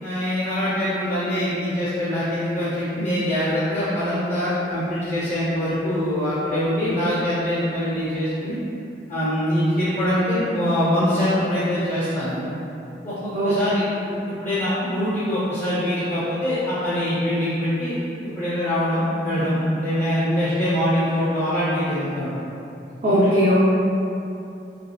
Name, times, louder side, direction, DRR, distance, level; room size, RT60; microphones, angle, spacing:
voice 1, 0.0-8.6 9.1-12.4 13.0-13.8 14.3-17.9 18.2-22.5 23.0-23.5, equal, 40° left, -12 dB, 0.6 m, -23 dB
voice 2, 23.0-23.6, equal, 40° right, -9 dB, 0.3 m, -18 dB
3.4 x 2.3 x 2.2 m, 2.8 s
head